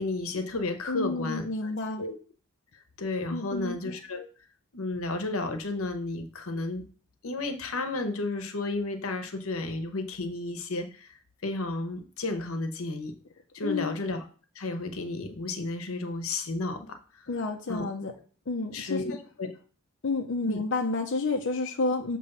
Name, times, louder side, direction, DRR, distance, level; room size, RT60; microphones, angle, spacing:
voice 1, 0.0-2.2 2.7-4.3 4.7-6.8 7.2-11.1 11.4-13.1 13.5-14.2 14.5-17.3 17.7-17.9 18.7-19.1 19.4-19.5 20.4-20.6, left 2 dB, 85° left, 7 dB, 1.0 m, -32 dB
voice 2, 0.9-2.1 3.3-3.8 13.6-13.9 17.3-18.1 18.5-19.0 20.0-22.2, left 3 dB, 60° left, 2 dB, 0.6 m, -30 dB
7.0 x 3.1 x 5.4 m, 0.40 s
head